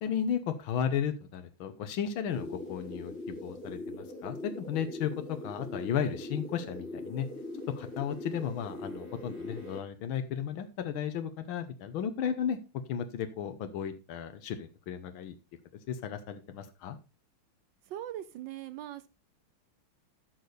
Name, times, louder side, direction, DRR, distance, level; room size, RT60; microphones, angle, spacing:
voice 1, 0.0-7.3 7.8-12.6 12.9-15.3 15.9-17.0, left 8 dB, 85° left, 8 dB, 1.7 m, -34 dB
sound 1, 2.3-9.8, left 1 dB, 55° left, 4.6 m, -41 dB
voice 2, 17.9-19.1, right 12 dB, 70° right, 14 dB, 1.3 m, -40 dB
12.0 x 6.6 x 4.0 m, 0.30 s
omnidirectional pair, 2.2 m